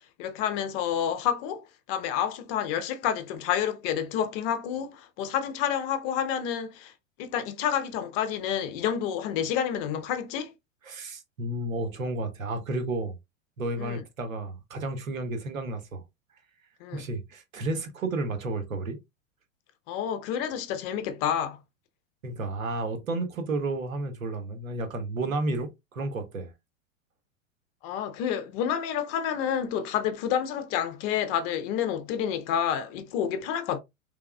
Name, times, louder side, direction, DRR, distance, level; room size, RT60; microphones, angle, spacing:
voice 1, 0.0-6.9 7.2-10.5 13.8-14.0 16.8-17.0 19.9-21.6 27.8-33.8, left 9 dB, 45° left, 0.8 m, -29 dB
voice 2, 10.9-13.2 13.6-16.0 16.9-19.0 22.2-26.5, right 2 dB, 80° right, 1.2 m, -32 dB
3.8 x 3.4 x 2.3 m
hypercardioid pair, 100°, 40 cm